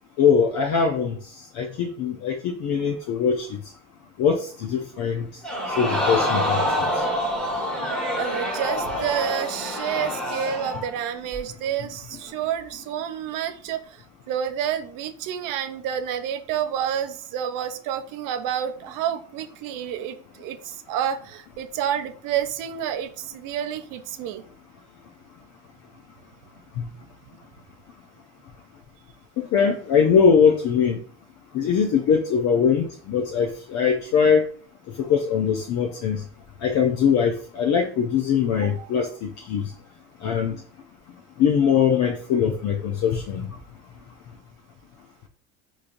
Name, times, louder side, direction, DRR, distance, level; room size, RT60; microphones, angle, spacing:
voice 1, 0.2-3.6 4.2-5.3 5.7-7.0 26.8-26.9 29.4-31.0 31.5-34.5 35.0-36.2 36.6-39.7 40.2-40.6 41.4-43.5, left 7 dB, 50° left, 2 dB, 0.6 m, -22 dB
Crowd, 5.4-10.9 11.3-11.4, equal, 5° left, 1.2 m, -26 dB
voice 2, 8.1-14.0 14.3-24.4 38.6-38.9, right 9 dB, 60° right, 8 dB, 0.5 m, -29 dB
3.7 x 3.1 x 2.5 m, 0.44 s
supercardioid pair, 105°, 36 cm